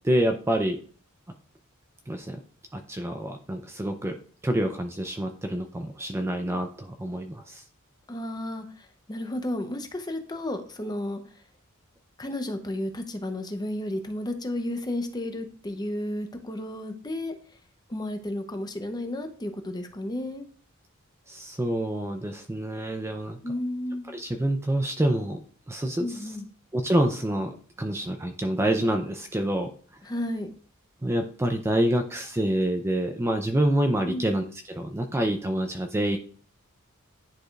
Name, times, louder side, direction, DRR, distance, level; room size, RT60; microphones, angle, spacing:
voice 1, 0.0-0.8 2.1-2.4 2.7-4.2 4.4-7.6 21.3-23.4 24.1-25.4 25.7-26.2 26.7-29.7 31.0-36.2, right 1 dB, 10° right, 5 dB, 0.5 m, -27 dB
voice 2, 8.1-11.4 12.2-17.3 17.9-20.5 23.4-24.2 26.0-26.5 30.0-30.5 34.0-34.3, left 1 dB, 20° left, 6 dB, 0.7 m, -32 dB
10.0 x 4.8 x 2.4 m, 0.43 s
head